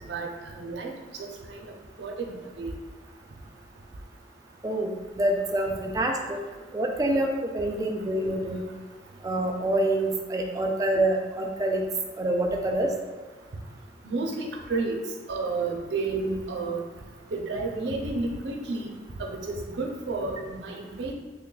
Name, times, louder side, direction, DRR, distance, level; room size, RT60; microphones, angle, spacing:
voice 1, 0.1-0.9 1.2-1.6 2.0-2.7 14.0-15.0 15.3-16.8 17.3-21.1, right 3 dB, 70° right, 1 dB, 0.5 m, -31 dB
voice 2, 5.2-6.4 6.7-7.3 7.5-8.7 9.2-11.8 12.2-12.9, right 1 dB, 20° right, 2 dB, 0.3 m, -26 dB
3.3 x 2.3 x 3.9 m, 1.4 s
head